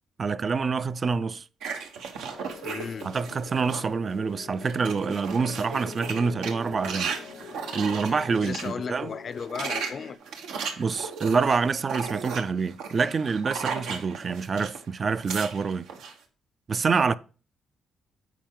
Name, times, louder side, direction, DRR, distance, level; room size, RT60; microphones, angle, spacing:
voice 1, 0.2-1.5 3.0-7.1 7.7-9.1 10.8-15.9 16.7-17.1, right 5 dB, 40° right, 0.4 m, -26 dB
sound 1, 1.6-3.9 4.3-8.7 9.3-14.8 15.1-16.1, right 5 dB, 90° right, 1.2 m, -36 dB
sound 2, 2.3-10.2, left 7 dB, 75° left, 0.8 m, -45 dB
voice 2, 2.6-3.1 8.0-10.2 17.1-17.2, left 6 dB, 45° left, 0.5 m, -36 dB
9.2 x 4.6 x 3.7 m
cardioid pair, 90°, 0 cm